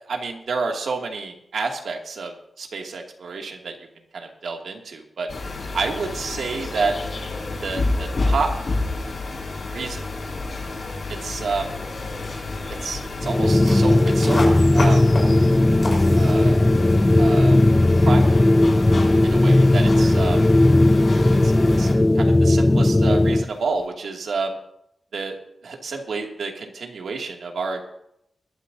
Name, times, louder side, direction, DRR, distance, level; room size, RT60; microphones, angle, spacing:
voice 1, 0.1-3.8 4.1-5.3 5.7-7.0 7.6-8.5 9.7-10.0 11.1-11.7 12.8-15.0 16.2-16.6 17.2-17.6 18.0-18.4 19.3-20.4 21.4-21.5 21.8-21.9 22.1-24.6 25.1-25.4 25.6-27.8, right 4 dB, 75° right, 1 dB, 2.5 m, -29 dB
sound 1, 5.3-21.9, left 3 dB, 50° left, 3.6 m, -30 dB
sound 2, 13.2-23.5, left 1 dB, 15° left, 0.5 m, -16 dB
sound 3, 13.3-23.9, left 2 dB, 35° left, 4.4 m, -36 dB
21.0 x 13.0 x 2.8 m, 0.75 s
wide cardioid pair, 170°, 0 cm